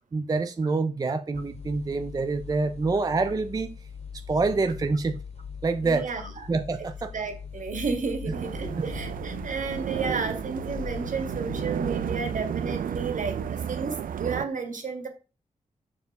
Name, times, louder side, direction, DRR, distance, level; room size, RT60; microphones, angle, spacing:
voice 1, 0.1-3.7 4.3-5.2 5.6-6.1 6.5-7.1 8.8-8.9, right 3 dB, 25° right, 0.4 m, -26 dB
sound 1, 1.3-14.0, left 6 dB, 50° left, 2.0 m, -41 dB
voice 2, 5.8-6.5 7.1-15.1, right 4 dB, 70° right, 1.9 m, -32 dB
sound 2, 8.3-14.5, right 8 dB, 85° right, 0.4 m, -32 dB
7.3 x 4.6 x 4.7 m
wide cardioid pair, 155°, 14 cm